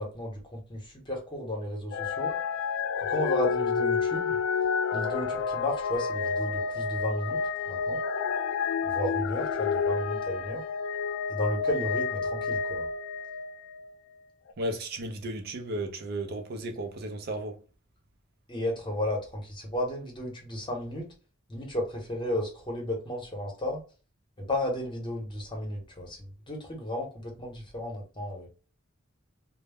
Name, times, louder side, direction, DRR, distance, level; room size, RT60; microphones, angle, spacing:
voice 1, 0.0-2.3 3.1-4.4 4.9-7.4 7.7-8.0 8.8-10.6 11.3-12.9 18.5-21.1 21.5-23.8 24.4-28.5, left 1 dB, 25° left, 0.8 m, -33 dB
sound 1, 1.9-13.9 14.5-14.6, left 5 dB, 85° left, 0.3 m, -29 dB
voice 2, 14.6-17.6, right 1 dB, 50° right, 0.4 m, -34 dB
2.1 x 2.0 x 3.3 m
head